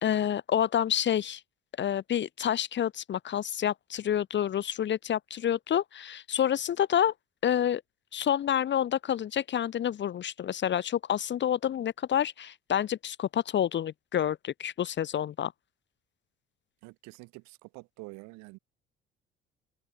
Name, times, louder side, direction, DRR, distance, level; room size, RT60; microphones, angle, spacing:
voice 1, 0.0-1.4 1.8-7.1 7.4-7.8 8.1-15.5, left 10 dB, 35° left, 0.9 m, -28 dB
voice 2, 16.8-18.6, right 25 dB, 60° right, 3.6 m, -47 dB
figure-of-eight pair, 55°, 31 cm